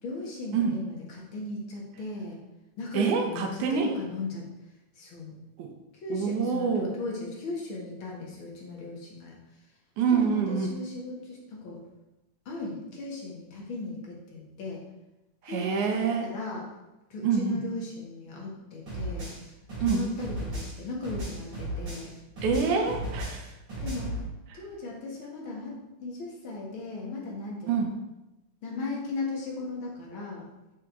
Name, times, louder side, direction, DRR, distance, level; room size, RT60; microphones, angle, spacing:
voice 1, 0.0-2.4 2.8-4.5 5.0-5.3 6.0-9.3 10.1-11.8 12.5-14.8 15.4-16.7 17.1-19.3 19.8-22.1 23.8-24.2 24.5-27.9 28.6-30.5, left 3 dB, 50° left, -2 dB, 2.2 m, -37 dB
voice 2, 2.9-3.9 5.6-5.7 6.1-6.9 10.0-10.7 15.4-16.3 17.2-17.6 19.8-20.1 22.4-23.5 27.7-27.9, right 6 dB, 90° right, 3 dB, 2.4 m, -26 dB
sound 1, 18.9-22.1 22.4-24.2, right 1 dB, 40° right, 3.6 m, -35 dB
6.6 x 6.2 x 4.6 m, 0.99 s
omnidirectional pair, 3.4 m